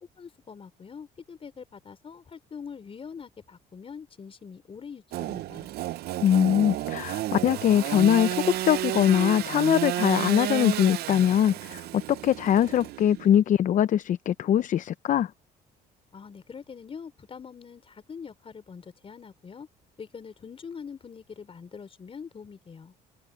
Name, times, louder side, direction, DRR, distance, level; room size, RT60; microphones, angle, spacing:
voice 1, 0.2-5.7 16.1-19.7 20.0-22.9, left 6 dB, 35° left, 4.8 m, -43 dB
Engine / Sawing, 5.1-13.4, right 15 dB, 70° right, 0.6 m, -32 dB
voice 2, 6.2-15.3, left 10 dB, 50° left, 0.6 m, -22 dB
cardioid pair, 110°, 17 cm